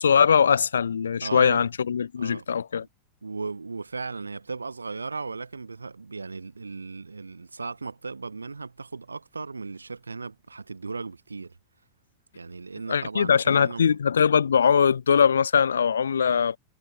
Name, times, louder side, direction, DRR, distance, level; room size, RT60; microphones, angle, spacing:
voice 1, 0.0-2.9 12.9-16.6, left 7 dB, 70° left, 0.4 m, -21 dB
voice 2, 1.2-1.7 2.2-2.6 3.2-11.5 12.3-14.0, right 4 dB, 80° right, 1.3 m, -36 dB
figure-of-eight pair, 90°, 0 cm